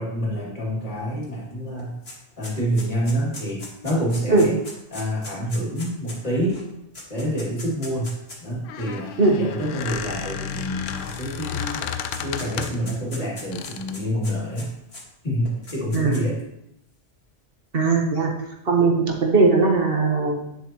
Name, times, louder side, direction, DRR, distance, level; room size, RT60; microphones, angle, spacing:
voice 1, 0.0-1.9 2.4-4.6 4.9-6.6 7.1-8.1 8.4-11.8 12.2-14.7 15.2-16.4, equal, 40° left, -5 dB, 2.9 m, -27 dB
sound 1, 1.2-1.3 1.6-8.5 9.3-9.4 10.5-11.5 11.8-15.0 15.5-16.4, left 2 dB, 55° left, 2.2 m, -40 dB
Squeak, 8.5-12.9 13.5-14.0, left 8 dB, 90° left, 1.0 m, -32 dB
voice 2, 17.7-18.3 18.6-18.9 19.2-20.6, right 3 dB, 55° right, 1 dB, 1.4 m, -19 dB
10.0 x 6.9 x 3.1 m, 0.83 s
omnidirectional pair, 1.2 m